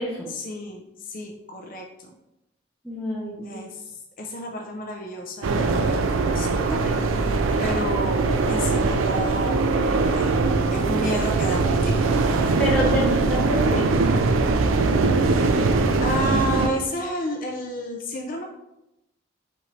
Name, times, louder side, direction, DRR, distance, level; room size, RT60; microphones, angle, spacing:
voice 1, 0.3-2.1 3.4-8.2 8.5-9.6 10.1-12.6 15.2-18.4, equal, 45° left, 1 dB, 0.5 m, -32 dB
voice 2, 2.8-3.7 12.6-13.9, equal, 5° left, -7 dB, 0.7 m, -27 dB
sound 1, 5.4-16.7, right 3 dB, 85° right, 0.4 m, -21 dB
5.5 x 2.6 x 3.2 m, 0.89 s
head